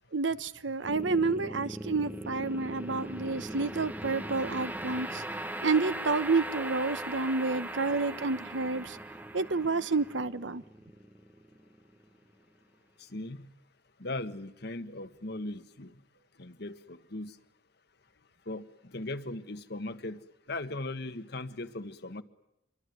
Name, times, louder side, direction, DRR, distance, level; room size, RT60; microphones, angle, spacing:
voice 1, 0.1-5.2 5.6-9.0 9.3-10.6, right 3 dB, 75° right, 1.1 m, -29 dB
sound 1, 0.8-12.0, right 1 dB, 10° right, 1.0 m, -39 dB
voice 2, 13.0-13.5 14.0-15.9 16.4-17.4 18.5-20.2 20.5-22.2, left 2 dB, 60° left, 1.5 m, -38 dB
26.5 x 23.5 x 9.4 m
head